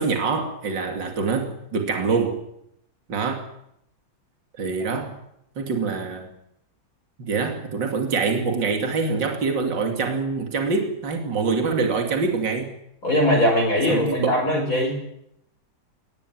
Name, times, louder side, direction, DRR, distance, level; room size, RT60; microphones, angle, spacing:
voice 1, 0.0-2.4 3.1-3.5 4.6-5.1 5.6-6.3 7.2-12.7 13.9-14.4, right 4 dB, 60° right, 3 dB, 3.3 m, -25 dB
voice 2, 13.0-15.0, equal, 40° left, 0 dB, 5.5 m, -21 dB
24.5 x 19.0 x 9.4 m, 0.79 s
omnidirectional pair, 2.2 m